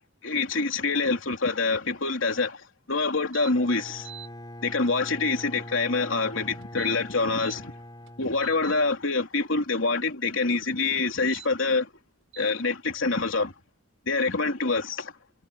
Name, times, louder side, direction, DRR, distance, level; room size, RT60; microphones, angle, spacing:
voice 1, 0.2-4.1 4.6-7.7 8.2-11.9 12.4-13.5 14.1-15.1, left 3 dB, 80° left, 3.4 m, -26 dB
sound 1, 3.3-3.5 3.9-4.3 6.6-7.6 8.1-8.8 11.1-11.5 12.3-12.5, right 11 dB, 85° right, 6.1 m, -44 dB
Bowed string instrument, 3.5-9.0, left 1 dB, 20° left, 4.2 m, -43 dB
head